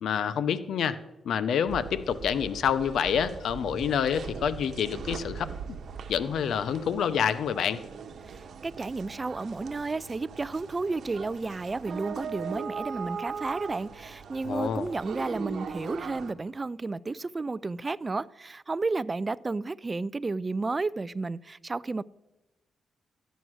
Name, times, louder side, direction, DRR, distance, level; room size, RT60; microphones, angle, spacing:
voice 1, 0.0-1.0 1.2-5.5 6.1-7.8 14.4-14.9, left 7 dB, 75° left, 0.7 m, -27 dB
sound 1, 1.7-16.3, right 6 dB, 65° right, 1.1 m, -40 dB
voice 2, 8.3-22.0, right 3 dB, 25° right, 0.3 m, -32 dB
14.0 x 9.2 x 6.2 m
cardioid pair, 100°, 0 cm